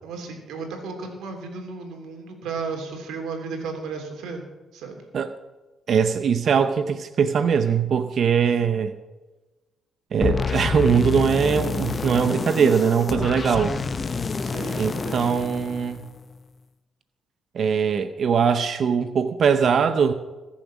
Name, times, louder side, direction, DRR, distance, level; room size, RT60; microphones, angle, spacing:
voice 1, 0.0-4.5 4.7-5.0 14.4-15.3, right 4 dB, 85° right, 3 dB, 3.3 m, -34 dB
voice 2, 5.9-8.9 10.1-13.7 14.8-16.0 17.5-20.1, right 6 dB, 55° right, 10 dB, 0.8 m, -21 dB
sound 1, 10.2-16.4, left 5 dB, 35° left, 0.7 m, -28 dB
20.5 x 7.3 x 6.3 m, 1.1 s
cardioid pair, 90°, 0 cm